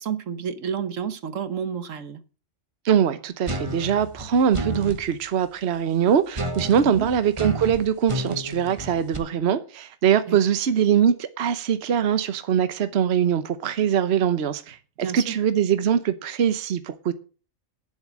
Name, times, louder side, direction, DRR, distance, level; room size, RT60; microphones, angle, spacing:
voice 1, 0.0-2.2 6.8-7.1 10.3-10.4 15.0-15.4, right 7 dB, 75° right, 1.4 m, -30 dB
voice 2, 2.8-17.1, right 8 dB, 55° right, 1.1 m, -22 dB
sound 1, 3.5-5.0 6.3-9.2, right 1 dB, 25° right, 1.4 m, -31 dB
10.5 x 7.6 x 7.4 m
omnidirectional pair, 1.3 m